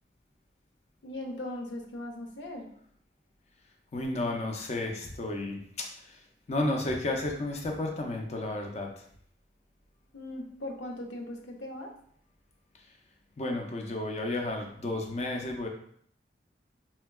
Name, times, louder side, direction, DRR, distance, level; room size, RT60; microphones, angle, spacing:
voice 1, 1.0-2.7 10.1-11.9, left 1 dB, 85° left, 2 dB, 0.6 m, -39 dB
voice 2, 3.9-9.0 12.8-12.9 13.4-15.7, left 2 dB, 40° left, 2 dB, 0.5 m, -32 dB
4.2 x 2.2 x 2.2 m, 0.63 s
head